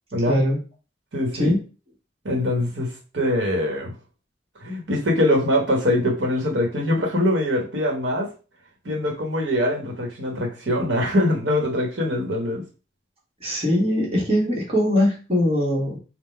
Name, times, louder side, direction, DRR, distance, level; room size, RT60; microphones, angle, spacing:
voice 1, 0.3-0.6 1.3-1.6 13.4-16.0, left 1 dB, 30° right, -3 dB, 1.4 m, -21 dB
voice 2, 1.1-1.6 2.2-3.9 4.6-8.3 8.8-12.6, left 1 dB, 75° right, 0 dB, 1.1 m, -23 dB
3.8 x 2.2 x 4.3 m, 0.34 s
head